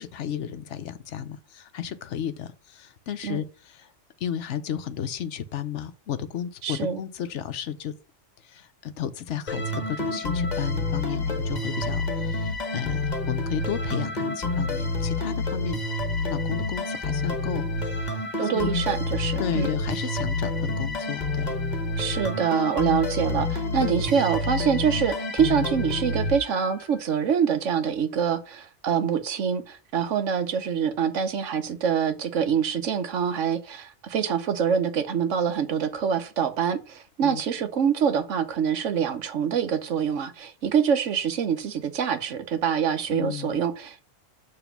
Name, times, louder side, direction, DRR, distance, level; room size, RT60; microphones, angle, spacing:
voice 1, 0.0-3.9 4.2-7.9 8.4-15.8 16.3-18.0 18.5-18.7 19.4-21.6 23.8-24.2 37.2-37.4 43.1-43.6, left 9 dB, 75° left, 1.0 m, -33 dB
voice 2, 6.6-7.0 18.4-19.7 22.0-44.0, right 7 dB, 85° right, 1.2 m, -25 dB
sound 1, 9.5-27.0, left 2 dB, 35° left, 1.4 m, -28 dB
7.1 x 3.4 x 5.8 m
omnidirectional pair, 1.2 m